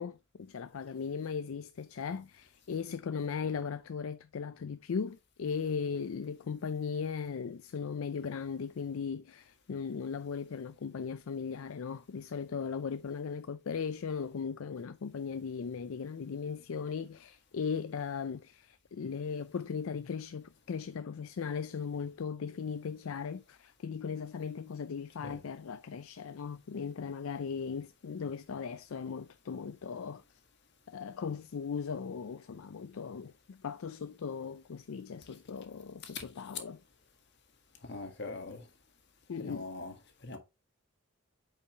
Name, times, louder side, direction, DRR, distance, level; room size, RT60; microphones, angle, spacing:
voice 1, 0.0-30.2 30.9-36.8 39.3-39.7, left 6 dB, 65° left, 0.4 m, -38 dB
voice 2, 37.8-38.7 39.4-39.9 40.2-40.4, left 2 dB, 50° left, 1.8 m, -42 dB
8.3 x 5.6 x 2.9 m
head